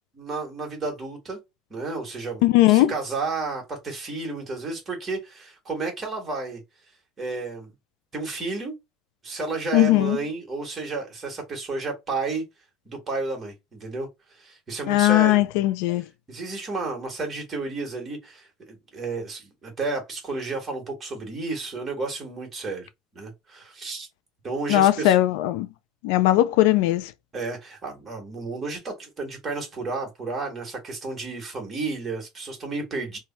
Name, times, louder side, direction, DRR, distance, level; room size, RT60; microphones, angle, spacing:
voice 1, 0.1-1.4 1.7-6.6 7.2-7.7 8.1-8.8 9.2-12.4 12.8-15.4 16.3-24.1 24.4-25.1 27.3-33.2, right 3 dB, 20° right, 1.4 m, -32 dB
voice 2, 2.4-2.9 9.7-10.2 14.9-16.0 24.7-25.7 26.0-27.1, left 15 dB, 80° left, 0.3 m, -19 dB
3.1 x 2.2 x 2.7 m
cardioid pair, 150°, 0 cm